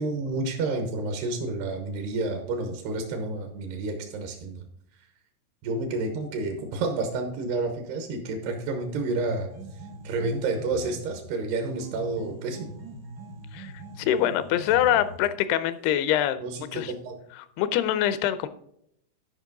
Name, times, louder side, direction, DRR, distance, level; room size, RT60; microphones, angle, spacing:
voice 1, 0.0-4.6 5.6-9.5 10.0-12.7 16.4-17.2, right 3 dB, 85° right, 4 dB, 3.2 m, -30 dB
sound 1, 9.5-11.3 11.8-15.3, right 1 dB, 70° right, 0.9 m, -42 dB
voice 2, 13.5-16.4 16.7-16.9 17.6-18.5, left 11 dB, 85° left, 13 dB, 2.7 m, -24 dB
12.0 x 5.3 x 3.9 m, 0.71 s
omnidirectional pair, 4.6 m